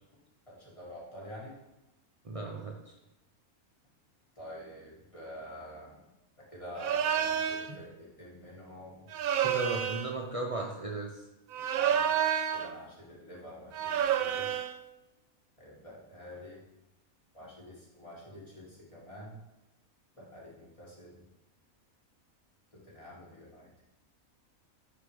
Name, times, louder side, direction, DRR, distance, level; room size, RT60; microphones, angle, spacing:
voice 1, 0.5-1.6 4.4-6.0 6.5-9.1 11.8-12.1 12.5-14.5 15.6-16.6 17.3-19.4 20.2-21.2 22.9-23.7, equal, 25° left, -5 dB, 1.8 m, -47 dB
voice 2, 2.2-2.9 7.7-7.8 9.4-11.2, right 2 dB, 60° right, 0 dB, 0.3 m, -36 dB
sound 1, 6.8-7.7 9.1-10.2 11.5-12.7 13.7-14.8, right 9 dB, 75° right, 1.0 m, -29 dB
9.4 x 3.2 x 4.8 m, 0.96 s
omnidirectional pair, 1.5 m